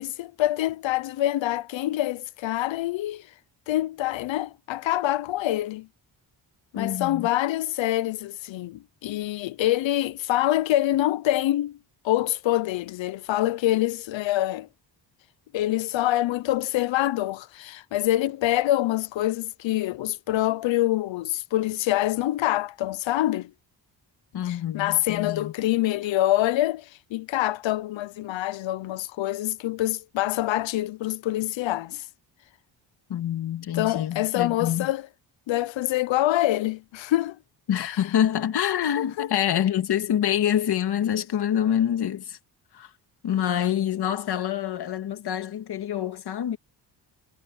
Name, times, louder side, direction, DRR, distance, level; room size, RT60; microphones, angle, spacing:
voice 1, 0.0-3.3 3.7-5.9 6.7-11.8 12.0-14.7 15.5-23.5 24.5-32.0 33.7-35.0 35.5-37.4 37.8-37.9 39.0-39.3, left 14 dB, 85° left, 0.8 m, -25 dB
voice 2, 6.7-7.3 24.3-25.5 33.1-34.9 37.7-42.4 42.7-42.9 43.2-46.6, left 10 dB, 60° left, 2.0 m, -26 dB
wide cardioid pair, 170°, 44 cm